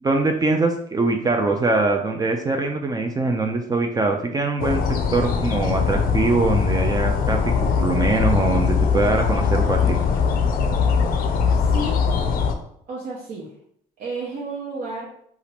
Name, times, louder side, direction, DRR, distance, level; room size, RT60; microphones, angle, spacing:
voice 1, 0.0-4.8 5.1-10.0, right 3 dB, 25° right, 4 dB, 0.3 m, -22 dB
sound 1, 4.6-12.5, left 6 dB, 60° left, 0.5 m, -21 dB
voice 2, 11.5-12.0 12.9-13.5 14.0-15.1, right 2 dB, 60° right, -5 dB, 0.8 m, -31 dB
2.8 x 2.4 x 3.3 m, 0.68 s
cardioid pair, 110°, 17 cm